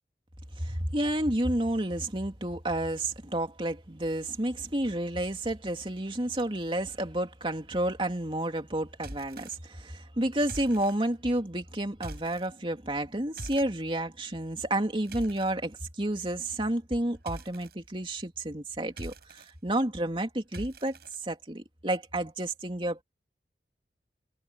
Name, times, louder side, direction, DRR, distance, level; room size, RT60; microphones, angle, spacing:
voice 1, 0.6-21.0 21.2-23.0, right 1 dB, 30° right, 2.8 m, -30 dB
sound 1, 8.9-9.5 10.4-11.0 11.9-12.5 13.4-13.7 14.7-15.5 17.3-17.7 18.8-19.5 20.5-21.2, right 1 dB, 60° right, 8.0 m, -43 dB
head